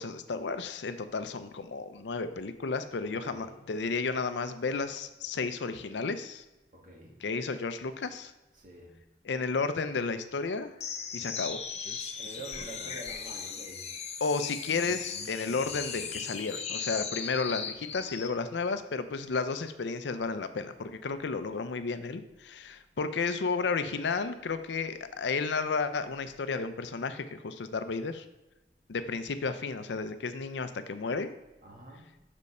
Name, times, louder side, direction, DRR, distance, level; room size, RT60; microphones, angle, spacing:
voice 1, 0.0-6.4 7.2-8.3 9.2-10.7 11.1-11.6 14.2-28.3 28.9-31.3, left 4 dB, 85° left, 11 dB, 0.5 m, -32 dB
voice 2, 3.1-3.6 6.7-7.2 8.5-9.0 12.2-13.9 20.5-21.2 31.6-32.1, right 1 dB, 45° right, -2 dB, 1.7 m, -47 dB
sound 1, 10.8-18.4, left 6 dB, 35° left, 0.6 m, -38 dB
5.4 x 5.3 x 6.5 m, 1.0 s
head